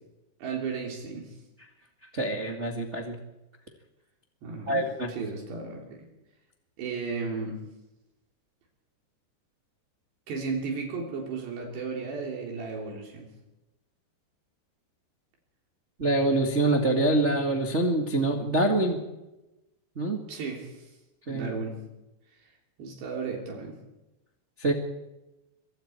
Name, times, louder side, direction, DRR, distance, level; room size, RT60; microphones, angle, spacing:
voice 1, 0.4-1.3 4.4-4.8 5.1-6.0 6.8-7.6 10.3-13.3 20.3-20.9 21.3-21.8 22.8-23.8, right 4 dB, 75° right, 0 dB, 5.4 m, -34 dB
voice 2, 2.1-3.2 4.7-5.1 16.0-19.0 19.9-20.2 21.3-21.5 24.6-24.7, right 2 dB, 35° right, 1 dB, 1.0 m, -25 dB
25.0 x 24.0 x 4.6 m, 0.97 s
omnidirectional pair, 5.0 m